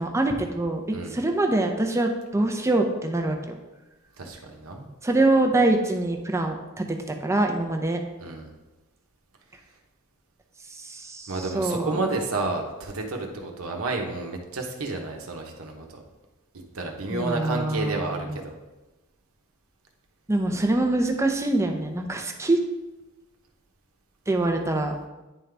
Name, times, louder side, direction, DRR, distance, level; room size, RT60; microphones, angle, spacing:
voice 1, 0.0-3.6 5.0-8.0 10.7-12.0 17.1-18.4 20.3-22.6 24.3-25.0, right 2 dB, 15° right, 3 dB, 0.6 m, -24 dB
voice 2, 4.2-4.9 8.2-8.5 11.3-16.0 16.7-18.5, right 3 dB, 85° right, 2 dB, 1.0 m, -31 dB
9.9 x 3.8 x 3.4 m, 1.1 s
head